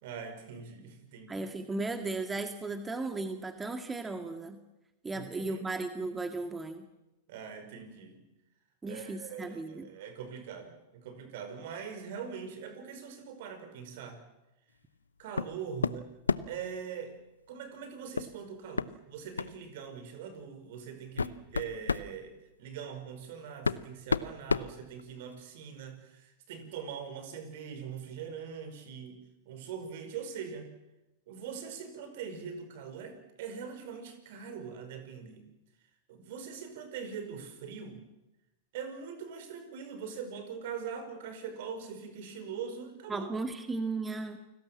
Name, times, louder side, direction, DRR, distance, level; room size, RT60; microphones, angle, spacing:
voice 1, 0.0-1.5 5.1-5.6 7.3-8.2 8.8-14.2 15.2-16.1 16.5-17.2 17.5-22.3 22.6-29.2 29.5-30.7 31.3-35.4 36.1-38.0 38.7-43.3, right 7 dB, 60° right, 8 dB, 5.3 m, -42 dB
voice 2, 1.3-4.6 5.0-6.9 8.8-9.9 43.1-44.4, right 3 dB, 15° right, 7 dB, 1.9 m, -35 dB
sound 1, 15.4-15.6 15.8-16.6 18.2-18.3 18.8-18.9 19.4-19.6 20.4-20.5 21.0-22.1 23.2-23.3 23.6-25.4, left 4 dB, 90° left, 0.8 m, -31 dB
29.0 x 19.5 x 7.5 m, 0.98 s
hypercardioid pair, 100°, 0 cm